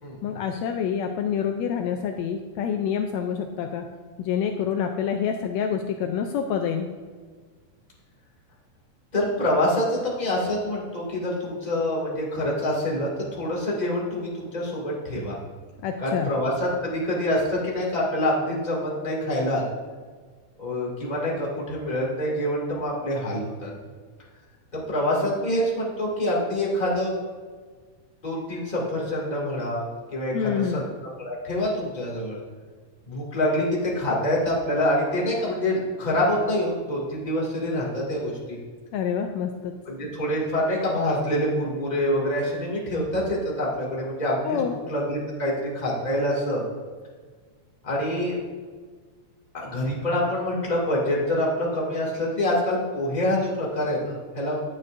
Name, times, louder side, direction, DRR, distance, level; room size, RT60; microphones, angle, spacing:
voice 1, 0.2-3.8 4.2-6.9 15.8-16.3 30.3-30.8 38.9-39.7 44.4-44.8, left 7 dB, 90° left, 4 dB, 1.5 m, -27 dB
voice 2, 9.1-15.4 16.0-19.7 20.6-23.7 24.7-27.1 28.2-29.8 30.1-30.9 31.2-32.4 33.1-38.6 39.8-46.6 47.8-48.4 49.5-54.6, left 1 dB, 15° left, -4 dB, 1.7 m, -26 dB
9.9 x 9.6 x 2.6 m, 1.5 s
omnidirectional pair, 3.7 m